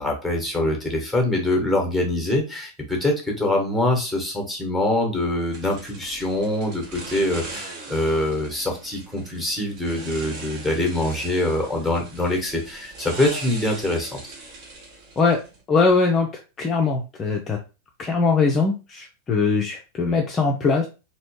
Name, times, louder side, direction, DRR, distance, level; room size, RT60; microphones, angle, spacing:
voice 1, 0.0-14.2, left 1 dB, ahead, 1 dB, 1.2 m, -24 dB
sound 1, 5.5-15.6, right 3 dB, 40° right, 1.1 m, -40 dB
voice 2, 15.7-16.3 16.6-17.6 18.0-20.9, left 4 dB, 25° left, 1 dB, 0.5 m, -21 dB
3.1 x 2.7 x 3.0 m, 0.30 s
figure-of-eight pair, 90°, 0 cm